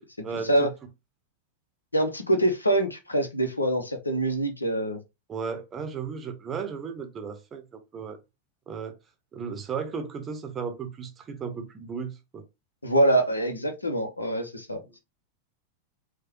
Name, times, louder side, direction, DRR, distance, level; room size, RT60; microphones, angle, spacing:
voice 1, 0.2-0.7 5.3-8.2 8.7-9.0 9.3-12.4, right 6 dB, 25° right, 0.7 m, -35 dB
voice 2, 1.9-5.0 12.8-14.8, right 1 dB, 80° left, 0.7 m, -24 dB
4.7 x 2.2 x 3.0 m
figure-of-eight pair, 90°, 0 cm